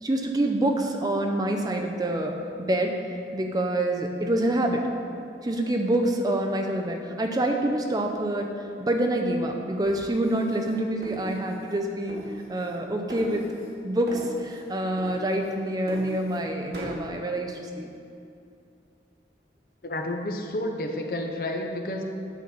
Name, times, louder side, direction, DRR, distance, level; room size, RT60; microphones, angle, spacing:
voice 1, 0.0-2.4 2.7-2.9 3.3-4.9 5.4-12.2 12.5-13.4 13.8-17.9, right 1 dB, 20° right, 3 dB, 0.5 m, -26 dB
sound 1, 9.8-11.8 12.1-12.8 13.1-13.8 14.1-14.7 15.0-16.5 16.7-17.0, right 1 dB, 65° right, 1.7 m, -40 dB
voice 2, 19.8-22.0, left 1 dB, 55° left, 3 dB, 0.7 m, -30 dB
9.3 x 4.0 x 6.7 m, 2.6 s
head